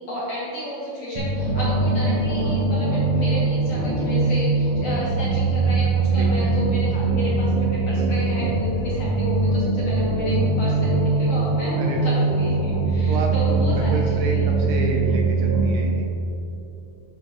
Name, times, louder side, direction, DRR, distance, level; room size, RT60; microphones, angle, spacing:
voice 1, 0.1-11.7 12.0-14.5, left 1 dB, 55° left, -7 dB, 1.9 m, -31 dB
sound 1, 1.2-15.8, right 3 dB, 60° right, 1.8 m, -22 dB
voice 2, 6.2-6.5 11.8-12.2 13.1-16.1, right 2 dB, 75° right, 1 dB, 2.3 m, -30 dB
10.5 x 6.9 x 3.0 m, 2.9 s
omnidirectional pair, 4.3 m